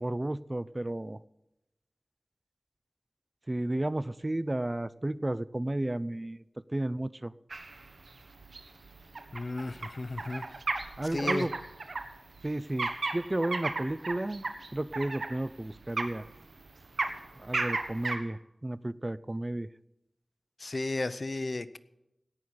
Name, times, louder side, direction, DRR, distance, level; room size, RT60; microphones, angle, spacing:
voice 1, 0.0-1.2 3.5-6.4 6.7-7.3 11.0-11.5 12.4-14.5 14.7-16.2 17.4-19.7, right 1 dB, 30° right, 18 dB, 0.4 m, -33 dB
sound 1, 7.5-18.2, right 3 dB, 80° right, 1.3 m, -35 dB
voice 2, 9.3-10.4 11.1-11.5 20.6-21.8, left 2 dB, 55° left, 14 dB, 0.6 m, -34 dB
17.5 x 6.3 x 8.6 m, 0.90 s
wide cardioid pair, 60°, 0 cm